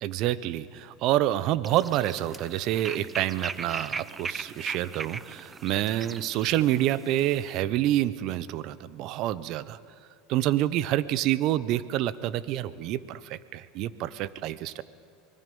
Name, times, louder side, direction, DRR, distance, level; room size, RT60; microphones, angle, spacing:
voice 1, 0.0-9.8 10.3-14.8, right 13 dB, 55° right, 17 dB, 0.8 m, -27 dB
sound 1, 1.6-7.6, right 4 dB, 20° right, 0.6 m, -39 dB
24.0 x 21.0 x 5.5 m, 2.3 s
hypercardioid pair, 100°, 0 cm